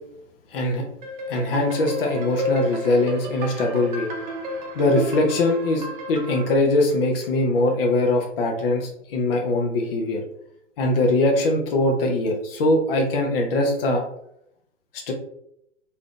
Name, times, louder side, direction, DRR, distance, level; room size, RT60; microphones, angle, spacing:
voice 1, 0.5-0.8 1.3-4.1 4.7-10.2 10.8-14.0 14.9-15.1, left 2 dB, 50° left, 1 dB, 0.7 m, -22 dB
sound 1, 1.0-6.5, left 1 dB, 40° right, 0.7 m, -32 dB
3.4 x 2.7 x 2.4 m, 0.76 s
hypercardioid pair, 135°, 37 cm